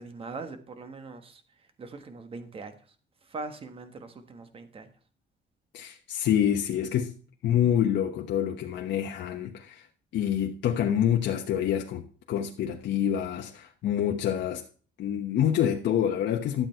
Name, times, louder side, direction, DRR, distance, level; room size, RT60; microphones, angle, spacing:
voice 1, 0.0-1.4 1.8-2.8 3.3-4.9, right 3 dB, 30° right, 1.4 m, -41 dB
voice 2, 5.7-7.1 7.4-9.9 10.1-12.0 12.3-14.6 15.0-16.7, left 9 dB, 70° left, 1.2 m, -27 dB
12.5 x 7.9 x 4.5 m
cardioid pair, 180°, 19 cm